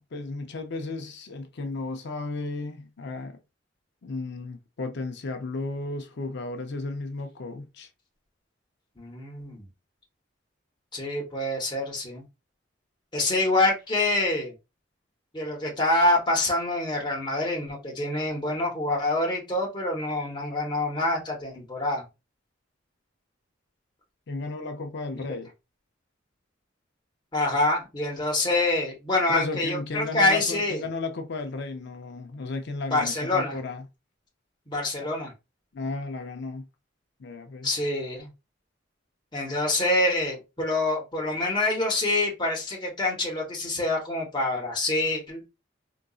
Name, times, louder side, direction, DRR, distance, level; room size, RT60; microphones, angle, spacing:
voice 1, 0.0-3.4 4.0-7.9 24.3-25.5 29.3-33.9 35.7-36.6 37.2-37.7, left 3 dB, 60° left, 0.5 m, -34 dB
voice 2, 9.0-9.6 10.9-12.2 13.1-14.5 15.3-22.0 27.3-30.8 32.9-33.6 34.7-35.3 37.6-38.3 39.3-45.4, left 2 dB, 25° left, 1.0 m, -26 dB
3.8 x 2.5 x 2.3 m
head